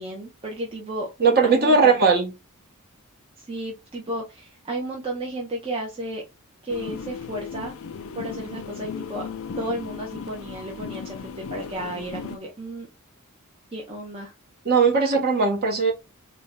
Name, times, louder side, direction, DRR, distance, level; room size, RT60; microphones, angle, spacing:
voice 1, 0.0-1.1 1.4-2.1 3.4-6.2 6.6-7.7 8.1-9.2 9.6-12.9 13.7-14.3, right 1 dB, 25° right, 0.7 m, -33 dB
voice 2, 1.2-2.3 14.6-15.9, right 4 dB, 45° right, 1.1 m, -18 dB
sound 1, 6.7-12.4, left 5 dB, 65° left, 0.4 m, -36 dB
3.8 x 2.2 x 3.7 m
head